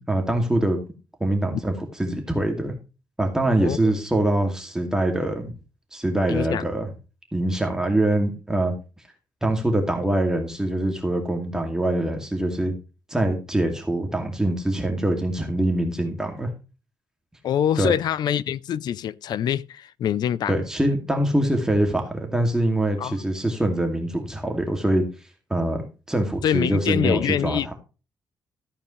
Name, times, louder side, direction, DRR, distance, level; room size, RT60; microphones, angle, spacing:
voice 1, 0.1-0.8 1.2-2.7 3.2-5.6 5.9-6.9 7.3-8.7 9.4-12.7 13.1-16.5 17.8-17.9 20.5-25.1 25.5-25.8 26.1-27.7, right 1 dB, 10° right, 2.4 m, -24 dB
voice 2, 3.6-3.9 6.3-6.6 17.4-20.6 23.0-23.2 26.4-27.7, left 10 dB, 75° left, 0.6 m, -25 dB
14.0 x 8.8 x 3.2 m
cardioid pair, 135°, 7 cm